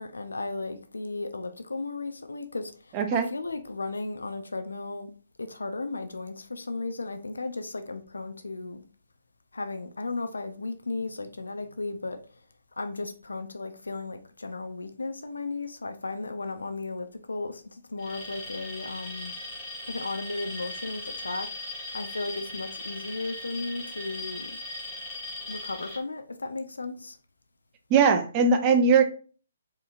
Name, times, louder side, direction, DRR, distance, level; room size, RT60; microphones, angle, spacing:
voice 1, 0.0-5.1 5.4-8.8 9.5-12.2 12.8-19.3 19.9-21.5 21.9-24.6 25.5-27.2, left 3 dB, 70° left, 0.4 m, -35 dB
voice 2, 2.9-3.3 27.9-29.0, right 5 dB, 25° right, 0.4 m, -20 dB
Alarm, 18.0-26.0, left 2 dB, 15° left, 2.0 m, -38 dB
4.5 x 2.9 x 2.5 m
figure-of-eight pair, 130°, 0 cm